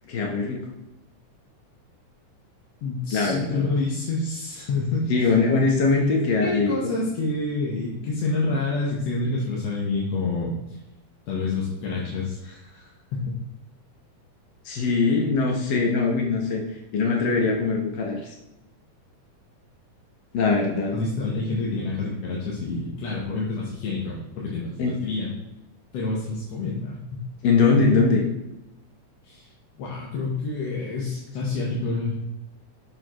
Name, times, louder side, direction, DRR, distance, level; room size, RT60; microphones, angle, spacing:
voice 1, 0.1-0.6 3.1-3.6 5.1-6.9 14.6-18.3 20.3-21.0 24.8-24.9 27.4-28.2, left 4 dB, 85° left, 0 dB, 0.9 m, -22 dB
voice 2, 2.8-5.3 6.4-10.8 11.3-13.3 20.9-25.3 25.9-27.2 29.2-29.5 29.8-32.3, left 3 dB, 65° left, -4 dB, 2.0 m, -28 dB
6.8 x 6.7 x 3.0 m, 0.95 s
omnidirectional pair, 3.5 m